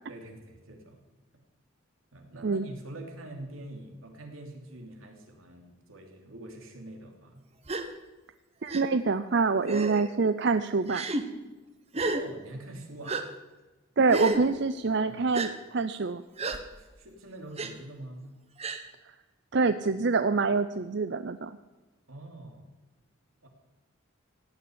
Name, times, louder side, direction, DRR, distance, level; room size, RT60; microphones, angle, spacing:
voice 1, 0.1-1.0 2.1-7.4 12.1-13.2 14.5-14.6 15.1-15.4 16.8-18.3 22.1-22.6 23.4-23.5, right 1 dB, 85° right, 3 dB, 3.0 m, -44 dB
Gasp, 7.7-7.9 8.7-8.8 9.7-10.1 10.9-11.2 11.9-12.2 13.1-13.2 14.1-14.4 15.3-15.5 16.4-16.6 17.6-17.7 18.6-18.8, right 2 dB, 30° right, 1.0 m, -31 dB
voice 2, 8.6-11.1 14.0-16.2 19.5-21.5, right 4 dB, 55° right, 11 dB, 0.5 m, -26 dB
17.5 x 6.9 x 10.0 m, 1.2 s
head